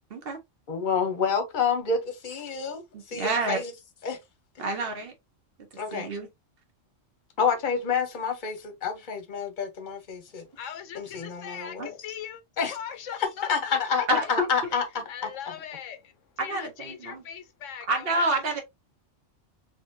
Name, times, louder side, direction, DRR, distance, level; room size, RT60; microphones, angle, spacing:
voice 1, 0.7-2.8 3.1-3.7 4.0-4.2 5.8-6.1 7.4-10.4 10.9-12.0 12.6-12.7 13.5-14.8, left 5 dB, 40° left, 1.0 m, -28 dB
voice 2, 2.9-3.6 4.6-5.1 5.9-6.3 11.8-11.9 14.1-14.5 16.4-17.2 17.9-18.6, right 2 dB, 50° right, 1.2 m, -28 dB
voice 3, 10.5-12.4 12.7-14.1 15.1-18.2, left 8 dB, 75° left, 1.0 m, -40 dB
4.1 x 2.9 x 2.6 m
omnidirectional pair, 1.4 m